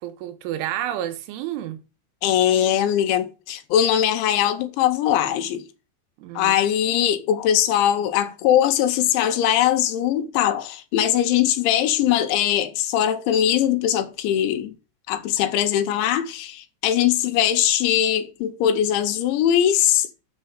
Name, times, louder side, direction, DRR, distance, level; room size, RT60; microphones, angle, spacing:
voice 1, 0.0-1.8 6.2-6.6, right 12 dB, 85° right, 3.5 m, -30 dB
voice 2, 2.2-5.6 6.3-14.7 15.1-20.1, left 10 dB, 80° left, 3.3 m, -21 dB
7.5 x 6.8 x 6.5 m
omnidirectional pair, 5.5 m